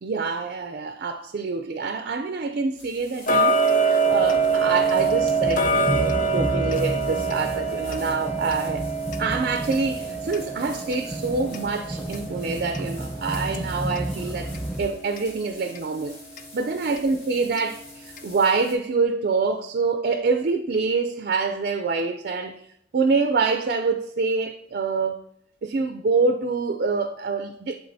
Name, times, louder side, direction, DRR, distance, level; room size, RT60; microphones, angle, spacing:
voice 1, 0.0-8.9 9.2-16.2 16.5-22.7 22.9-25.2 25.6-27.8, right 4 dB, 50° right, 0.4 m, -26 dB
sound 1, 2.8-18.7, left 2 dB, 30° left, 1.8 m, -47 dB
Tick-tock, 3.3-14.1 14.5-14.6 15.2-15.3 15.7-15.8 16.4-16.5 17.0-17.1 17.6-17.7 18.2-18.3, right 4 dB, 45° left, 0.5 m, -25 dB
sound 2, 4.1-14.8, right 1 dB, 5° left, 0.9 m, -32 dB
11.0 x 3.7 x 2.7 m
head